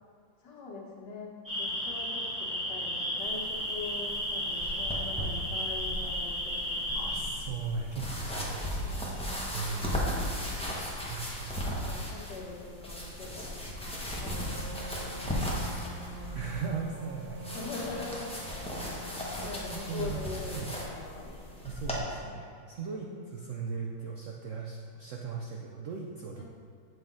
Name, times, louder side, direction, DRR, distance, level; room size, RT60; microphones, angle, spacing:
voice 1, 0.4-7.1 8.8-9.4 9.7-10.2 11.6-14.6 15.3-16.4 17.5-18.4 19.4-21.7 22.8-23.4 26.4-26.5, left 3 dB, 65° left, -2 dB, 1.7 m, -43 dB
sound 1, 1.5-7.3, left 1 dB, 20° right, 1.8 m, -33 dB
sound 2, 3.2-22.0, equal, 5° left, 0.4 m, -37 dB
voice 2, 6.9-8.7 9.5-10.0 11.1-11.8 16.3-17.6 19.4-20.2 20.5-20.7 21.6-26.4, right 5 dB, 90° right, 0 dB, 0.6 m, -38 dB
Wind instrument woodwind instrument, 14.2-20.2, equal, 60° right, 0.9 m, -46 dB
7.8 x 5.5 x 3.7 m, 2.2 s
omnidirectional pair, 2.0 m